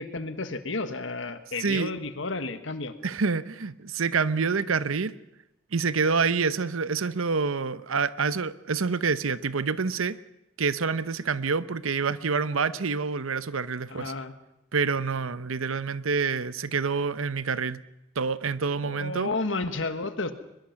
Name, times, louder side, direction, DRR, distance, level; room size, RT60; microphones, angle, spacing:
voice 1, 0.0-2.9 13.9-14.3 18.8-20.3, left 3 dB, 65° left, 10 dB, 1.5 m, -32 dB
voice 2, 1.6-1.9 3.0-5.1 5.7-10.2 10.6-14.1 14.7-17.8 18.2-19.3, right 5 dB, 90° right, 15 dB, 0.8 m, -27 dB
22.5 x 21.5 x 5.9 m, 0.88 s
head